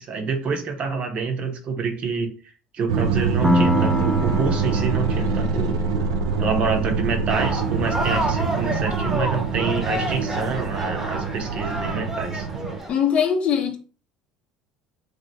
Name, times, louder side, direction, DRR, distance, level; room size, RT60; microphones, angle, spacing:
voice 1, 0.0-2.3 2.7-5.7 6.4-12.5, right 5 dB, 50° right, 0.8 m, -27 dB
sound 1, 2.9-12.8, right 5 dB, 90° right, 0.3 m, -25 dB
Piano, 3.4-10.8, left 1 dB, 5° left, 0.3 m, -29 dB
sound 2, 7.3-12.9, equal, 15° right, 0.9 m, -29 dB
voice 2, 12.9-13.8, left 7 dB, 50° left, 0.7 m, -21 dB
2.8 x 2.4 x 3.3 m
hypercardioid pair, 80°, 3 cm